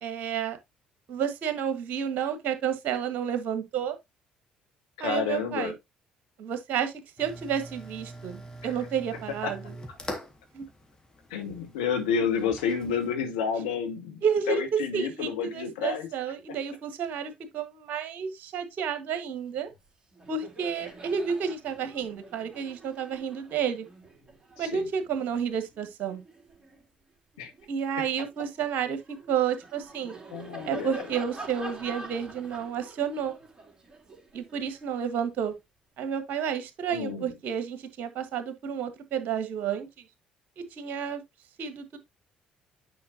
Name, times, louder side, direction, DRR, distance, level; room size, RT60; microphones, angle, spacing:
voice 1, 0.0-0.6 1.1-4.0 5.0-5.7 6.4-6.9 7.2-9.8 10.5-10.6 14.2-19.7 20.3-23.9 24.6-26.2 27.7-30.2 30.6-33.3 34.3-35.5 36.0-40.0 40.6-41.2 41.6-42.0, right 7 dB, 55° right, 1.5 m, -31 dB
voice 2, 5.0-5.7 8.6-8.7 9.4-9.5 11.3-14.2 14.5-16.1 24.6-24.8 27.4-27.5 30.3-31.0 36.9-37.3, left 6 dB, 75° left, 1.4 m, -30 dB
sound 1, 7.2-13.1, equal, 20° left, 2.1 m, -43 dB
Laughter, 19.7-19.9 20.1-26.8 27.3-35.5, right 2 dB, 20° right, 3.0 m, -47 dB
9.5 x 5.1 x 2.8 m
figure-of-eight pair, 50°, 4 cm